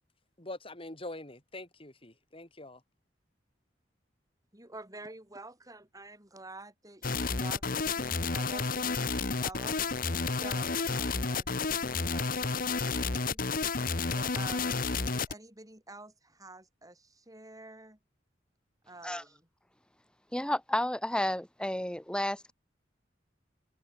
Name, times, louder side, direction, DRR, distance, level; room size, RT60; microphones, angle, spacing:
voice 1, 0.4-2.8, left 2 dB, 30° left, 5.7 m, -44 dB
voice 2, 4.5-9.8 10.3-13.4 14.0-18.0 18.8-19.5, right 2 dB, 20° right, 6.6 m, -49 dB
sound 1, 7.0-15.3, left 4 dB, 50° left, 1.4 m, -31 dB
voice 3, 20.3-22.5, left 1 dB, 5° left, 2.2 m, -31 dB
head